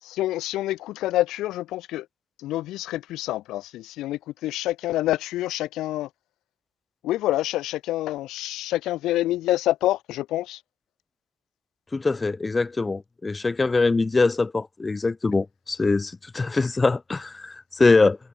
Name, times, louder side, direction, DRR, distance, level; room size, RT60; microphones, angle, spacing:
voice 1, 0.0-2.0 2.4-6.1 7.0-10.6, left 15 dB, 90° left, 5.2 m, -27 dB
voice 2, 11.9-18.2, left 3 dB, 25° left, 5.7 m, -23 dB
cardioid pair, 90°, 0 cm